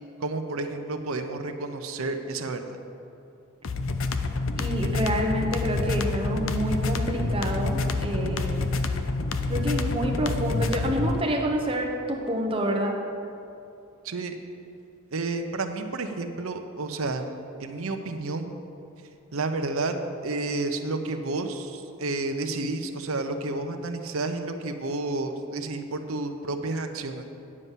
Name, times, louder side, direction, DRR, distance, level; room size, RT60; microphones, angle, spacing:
voice 1, 0.2-2.8 14.0-14.4 15.1-17.3 17.6-18.5 19.3-20.0 20.2-27.2, right 2 dB, 80° right, 6 dB, 0.7 m, -30 dB
sound 1, 3.6-11.2, left 3 dB, 65° left, 0.6 m, -27 dB
voice 2, 4.6-8.7 9.5-12.9, equal, 25° right, 1 dB, 1.0 m, -28 dB
9.7 x 5.5 x 7.4 m, 2.7 s
head